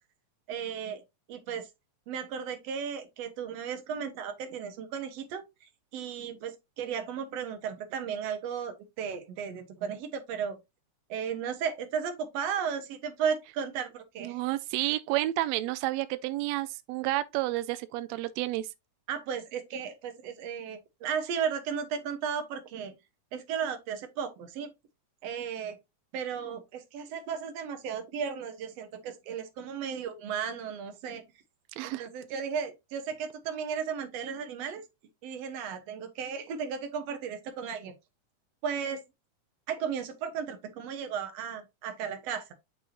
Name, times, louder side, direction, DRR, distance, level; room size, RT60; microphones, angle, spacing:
voice 1, 0.5-1.0 1.3-1.7 2.1-10.6 11.1-14.4 19.1-23.0 23.3-24.7 25.2-25.8 26.1-31.2 31.8-34.8 35.2-37.9 38.6-39.0 39.7-42.5, right 7 dB, 65° right, 2.0 m, -35 dB
voice 2, 14.2-18.7 31.8-32.1, right 16 dB, 85° right, 1.5 m, -30 dB
7.5 x 5.5 x 2.7 m
omnidirectional pair, 3.6 m